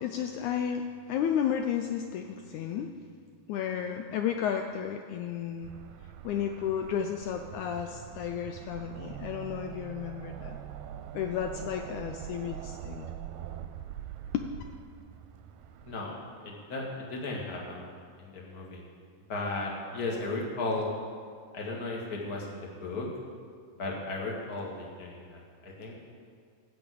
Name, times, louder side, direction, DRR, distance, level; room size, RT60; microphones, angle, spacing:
voice 1, 0.0-2.9 3.5-5.7 6.2-10.6 11.1-13.1 14.3-14.4, left 8 dB, 85° left, 5 dB, 1.7 m, -32 dB
sound 1, 5.6-15.9, right 10 dB, 85° right, 2.3 m, -43 dB
voice 2, 15.8-16.1 16.4-18.8 19.3-20.9 21.5-23.1 23.8-26.0, left 2 dB, 35° left, -2 dB, 1.8 m, -35 dB
14.5 x 5.3 x 8.3 m, 2.1 s
omnidirectional pair, 4.0 m